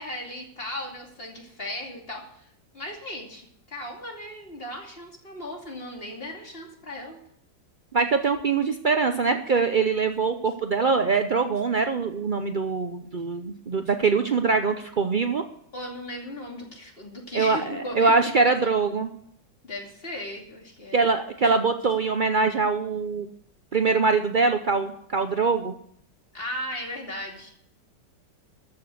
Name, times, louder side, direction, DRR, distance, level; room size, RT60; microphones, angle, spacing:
voice 1, 0.0-2.5 2.7-7.2 15.7-18.1 18.4-18.5 19.6-21.0 26.3-27.5, left 1 dB, 30° left, 0 dB, 2.9 m, -36 dB
voice 2, 7.9-15.4 17.3-19.1 20.9-23.3 23.7-25.7, right 4 dB, 90° right, 7 dB, 0.4 m, -23 dB
13.5 x 7.0 x 7.8 m, 0.68 s
omnidirectional pair, 1.9 m